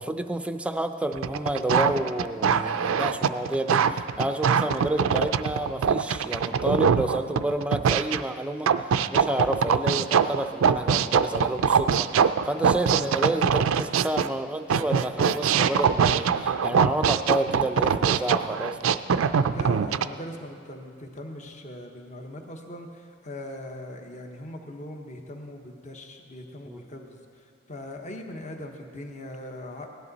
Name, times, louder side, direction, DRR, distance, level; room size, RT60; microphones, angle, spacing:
voice 1, 0.0-8.7 9.1-19.0 26.7-26.9, right 1 dB, 5° right, 8 dB, 0.5 m, -30 dB
sound 1, 1.1-8.2 8.7-14.3 14.7-20.1, right 7 dB, 70° right, 0.4 m, -23 dB
voice 2, 19.5-29.9, left 1 dB, 35° left, 3 dB, 1.0 m, -40 dB
17.5 x 11.5 x 4.0 m, 2.3 s
head